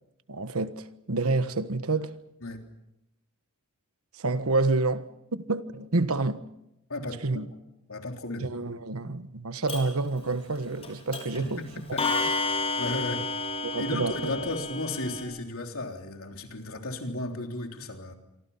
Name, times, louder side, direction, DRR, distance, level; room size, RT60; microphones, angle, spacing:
voice 1, 0.3-2.1 4.1-6.4 7.2-7.5 8.4-11.6 13.6-14.3, right 3 dB, 70° right, 1.4 m, -28 dB
voice 2, 6.9-7.4 7.9-8.5 11.4-12.3 12.8-13.3 13.8-18.1, left 2 dB, 65° left, 3.5 m, -34 dB
Clock, 9.7-9.8 10.8-10.9 11.1-11.4 12.0-15.2, left 3 dB, 30° left, 6.7 m, -30 dB
27.5 x 24.5 x 5.7 m
head